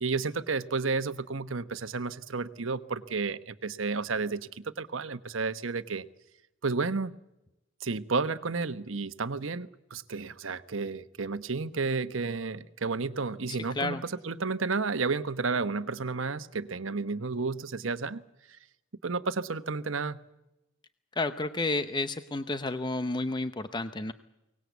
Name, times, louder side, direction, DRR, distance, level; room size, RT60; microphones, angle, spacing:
voice 1, 0.0-6.0 6.6-7.1 7.8-18.2 19.0-20.2, right 4 dB, 85° right, 12 dB, 1.1 m, -32 dB
voice 2, 13.5-14.0 21.2-24.1, left 2 dB, 25° left, 10 dB, 0.8 m, -31 dB
23.5 x 19.0 x 8.2 m, 0.92 s
head